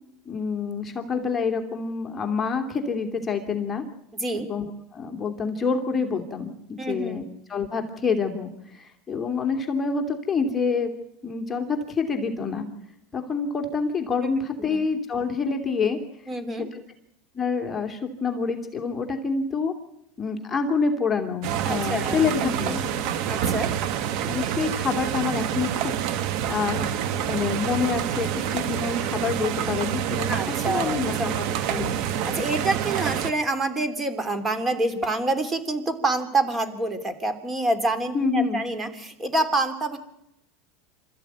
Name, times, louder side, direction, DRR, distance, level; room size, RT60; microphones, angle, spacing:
voice 1, 0.3-3.8 4.3-7.2 7.5-10.9 11.2-12.7 13.1-16.0 16.6-16.7 17.3-19.7 20.2-22.8 24.2-26.9 27.1-30.3 30.7-31.3 31.7-32.0 38.1-38.6, left 5 dB, 15° left, 3 dB, 2.7 m, -27 dB
voice 2, 4.1-4.5 6.8-7.2 14.2-14.3 14.7-14.8 16.3-16.7 21.6-22.2 22.6-23.7 30.3-40.0, right 2 dB, 15° right, 10 dB, 3.2 m, -27 dB
sound 1, 21.4-33.3, right 9 dB, 55° right, 1.6 m, -27 dB
27.5 x 14.0 x 9.3 m, 0.83 s
supercardioid pair, 135°, 0 cm